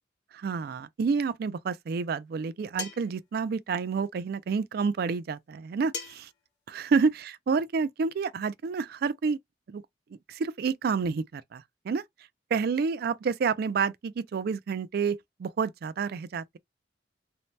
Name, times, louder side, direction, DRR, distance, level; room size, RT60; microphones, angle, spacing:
voice 1, 0.3-6.2 6.7-9.4 9.7-9.8 10.3-12.0 12.5-16.6, right 5 dB, 60° right, 0.3 m, -29 dB
sound 1, 2.8-3.2 5.9-6.3, left 6 dB, 65° left, 0.8 m, -37 dB
2.7 x 2.1 x 3.1 m
head